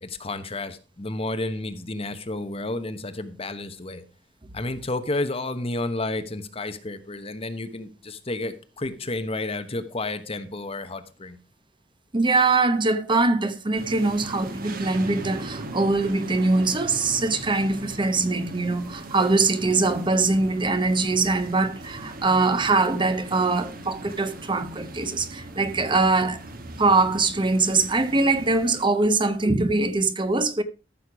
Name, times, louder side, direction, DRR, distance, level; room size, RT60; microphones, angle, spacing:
voice 1, 0.0-4.0 4.5-11.4, left 2 dB, 35° left, 1.2 m, -31 dB
voice 2, 12.1-26.4 26.8-30.6, right 3 dB, 25° right, 0.9 m, -22 dB
sound 1, 13.7-28.8, right 1 dB, 55° right, 1.5 m, -39 dB
14.0 x 6.6 x 4.8 m
head